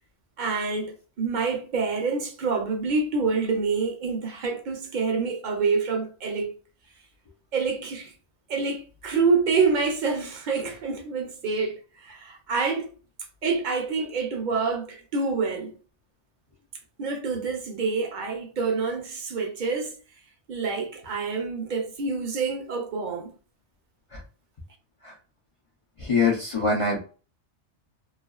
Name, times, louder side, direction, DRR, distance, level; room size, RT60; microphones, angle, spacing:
voice 1, 0.4-6.5 7.5-8.1 8.5-12.9 13.4-15.7 17.0-20.0 20.5-23.3, right 4 dB, 55° right, 0.5 m, -27 dB
voice 2, 26.0-27.0, left 4 dB, 60° left, 0.3 m, -24 dB
2.4 x 2.2 x 2.3 m
omnidirectional pair, 1.2 m